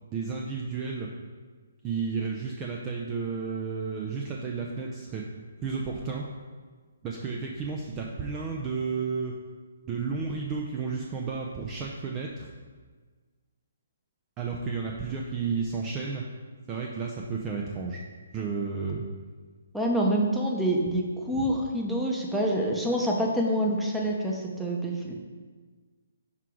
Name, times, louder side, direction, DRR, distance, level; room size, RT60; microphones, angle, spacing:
voice 1, 0.0-1.1 1.8-5.3 5.6-6.3 7.0-9.3 9.9-12.5 14.4-16.2 16.7-18.0 18.3-19.0 21.4-21.5, right 5 dB, 20° right, -1 dB, 0.6 m, -32 dB
voice 2, 19.7-25.1, right 1 dB, 5° right, -2 dB, 0.9 m, -26 dB
5.9 x 4.6 x 4.7 m, 1.5 s
hypercardioid pair, 145°, 0 cm